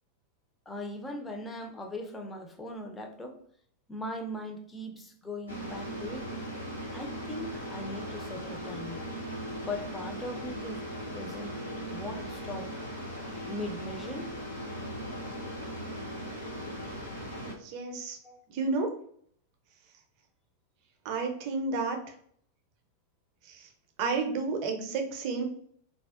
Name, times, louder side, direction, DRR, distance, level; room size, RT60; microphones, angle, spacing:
voice 1, 0.7-3.4 3.9-6.3 6.9-9.0 9.6-11.5 11.9-12.7 13.5-14.3 18.2-18.4, left 1 dB, 15° left, 3 dB, 0.4 m, -39 dB
sound 1, 5.5-17.5, equal, 85° left, 0.7 m, -38 dB
voice 2, 17.6-18.2 18.5-18.9 21.0-22.0 24.0-25.4, right 4 dB, 45° right, 4 dB, 0.5 m, -30 dB
2.6 x 2.0 x 2.3 m, 0.62 s
figure-of-eight pair, 90°, 0 cm